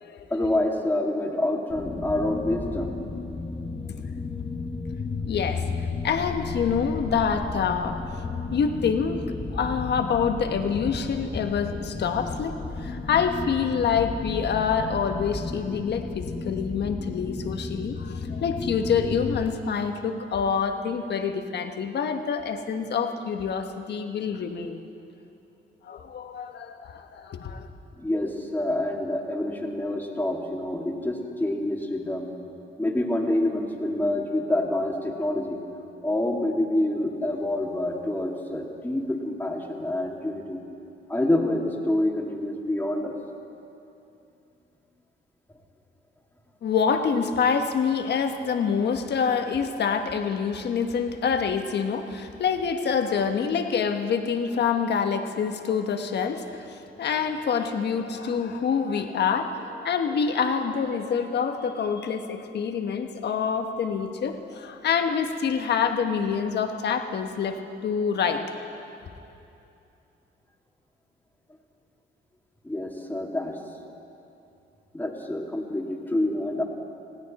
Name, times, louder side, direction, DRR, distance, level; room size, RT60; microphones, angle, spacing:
voice 1, 0.3-3.0 28.0-32.3 32.8-35.6 36.0-40.6 41.1-43.1 72.6-73.6 74.9-76.6, left 1 dB, 10° left, 0 dB, 2.2 m, -27 dB
sound 1, 1.7-19.5, left 4 dB, 25° left, 1.1 m, -33 dB
voice 2, 5.3-5.6 6.0-9.3 9.5-24.8 25.8-27.7 46.6-68.4, left 6 dB, 60° left, 6 dB, 1.3 m, -26 dB
20.0 x 16.5 x 4.2 m, 2.8 s
cardioid pair, 90°, 20 cm